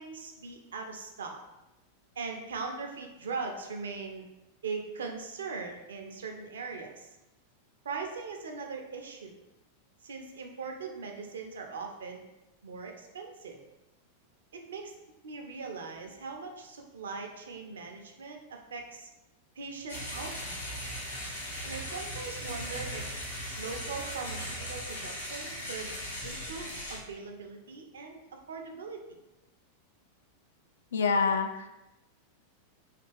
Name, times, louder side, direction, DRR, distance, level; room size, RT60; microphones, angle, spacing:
voice 1, 0.0-1.4 2.2-4.3 4.6-7.1 7.8-9.4 10.0-12.2 12.6-13.6 14.5-14.9 15.2-19.1 19.6-20.9 21.6-23.1 23.6-25.9 26.2-29.0, right 4 dB, 65° right, 3 dB, 0.5 m, -40 dB
sound 1, 19.9-27.0, equal, 85° left, 1.0 m, -38 dB
voice 2, 30.9-31.7, left 5 dB, 65° left, 6 dB, 0.3 m, -26 dB
3.2 x 2.8 x 3.3 m, 0.97 s
figure-of-eight pair, 90°, 0 cm